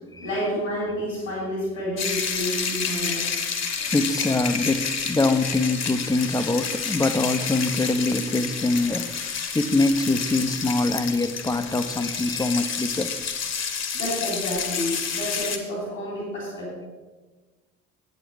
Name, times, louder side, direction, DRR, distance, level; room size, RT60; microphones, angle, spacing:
voice 1, 0.2-3.3 13.9-16.9, equal, 80° left, -4 dB, 3.5 m, -29 dB
sound 1, 2.0-15.6, left 6 dB, 40° left, 1.3 m, -29 dB
voice 2, 3.8-13.2, left 2 dB, 10° left, 9 dB, 0.7 m, -24 dB
8.7 x 7.4 x 6.2 m, 1.3 s
figure-of-eight pair, 50°, 39 cm